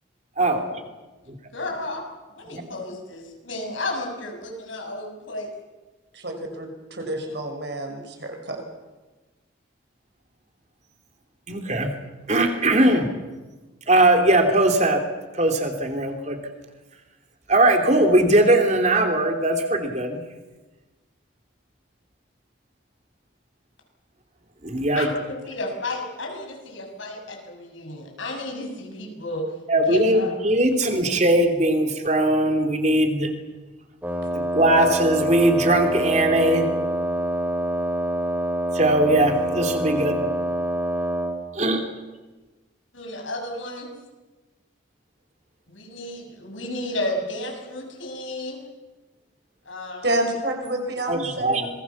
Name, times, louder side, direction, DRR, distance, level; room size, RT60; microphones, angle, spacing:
voice 1, 0.4-0.8 1.5-2.0 2.4-5.5 25.0-29.4 29.9-30.3 31.0-31.2 42.9-43.9 45.7-48.6 49.7-50.2, left 1 dB, 85° left, 2 dB, 7.0 m, -32 dB
voice 2, 6.1-8.6 50.0-51.7, right 1 dB, 60° right, 3 dB, 5.9 m, -29 dB
voice 3, 11.5-11.9 12.3-13.1 13.9-15.0 15.3-16.4 17.5-20.2 24.6-25.1 29.7-33.3 34.3-36.7 38.7-40.2 41.5-41.8 51.1-51.7, right 1 dB, 35° right, 4 dB, 3.1 m, -20 dB
Wind instrument woodwind instrument, 34.0-41.4, right 1 dB, 10° right, 3.0 m, -26 dB
26.5 x 21.5 x 7.3 m, 1.2 s
head